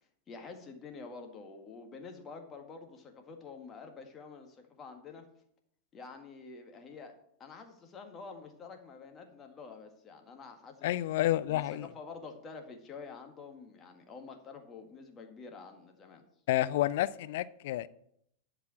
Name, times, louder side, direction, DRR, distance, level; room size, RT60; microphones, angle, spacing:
voice 1, 0.3-5.2 5.9-10.9 11.5-16.2, left 4 dB, 25° left, 1.7 m, -48 dB
voice 2, 10.8-11.9 16.5-17.9, left 14 dB, 55° left, 0.4 m, -29 dB
11.0 x 4.9 x 7.7 m
figure-of-eight pair, 90°, 0 cm